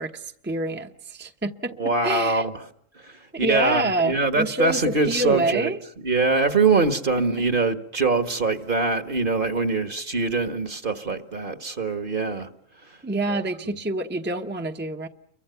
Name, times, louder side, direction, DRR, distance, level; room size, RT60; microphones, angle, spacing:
voice 1, 0.0-1.7 2.0-2.4 3.4-5.8 13.0-15.1, right 2 dB, 10° right, 1.0 m, -27 dB
voice 2, 1.8-2.5 3.0-5.7 6.0-12.5 13.3-13.4, right 3 dB, 45° right, 1.7 m, -23 dB
29.5 x 23.5 x 6.9 m
omnidirectional pair, 1.3 m